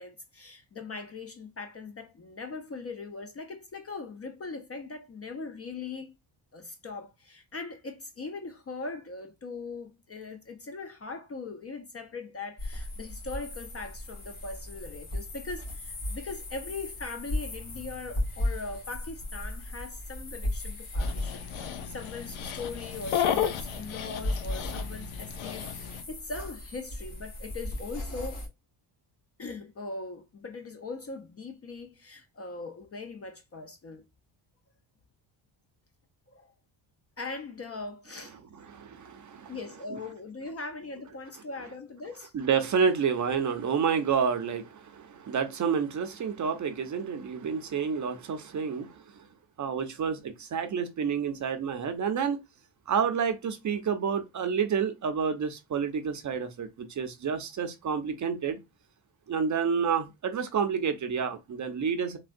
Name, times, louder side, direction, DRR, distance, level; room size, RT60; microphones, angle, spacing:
voice 1, 0.0-6.1 6.5-25.7 26.1-28.4 29.4-34.1 36.3-36.5 37.2-38.4 39.5-42.3, left 3 dB, 30° left, 0.4 m, -40 dB
sound 1, 12.6-28.5, left 1 dB, 50° left, 1.8 m, -36 dB
Dog, 21.0-26.0, left 9 dB, 75° left, 0.6 m, -33 dB
voice 2, 38.7-39.6 42.3-49.3 49.6-52.4 52.9-58.6 59.3-62.2, right 6 dB, 40° right, 0.5 m, -29 dB
3.4 x 2.2 x 2.5 m
cardioid pair, 110°, 50 cm